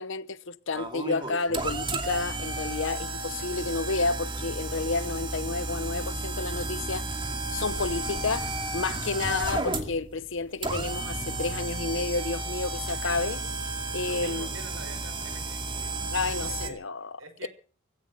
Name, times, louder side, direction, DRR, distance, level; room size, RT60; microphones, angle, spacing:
voice 1, 0.0-7.1 7.5-13.4 13.9-14.5 16.1-17.1 17.4-17.5, left 3 dB, 65° left, 0.9 m, -30 dB
sound 1, 0.7-16.7, right 2 dB, 25° right, 2.5 m, -33 dB
voice 2, 14.0-16.0 16.3-16.9 17.2-17.5, right 2 dB, 75° right, 5.3 m, -45 dB
16.0 x 14.5 x 6.2 m
head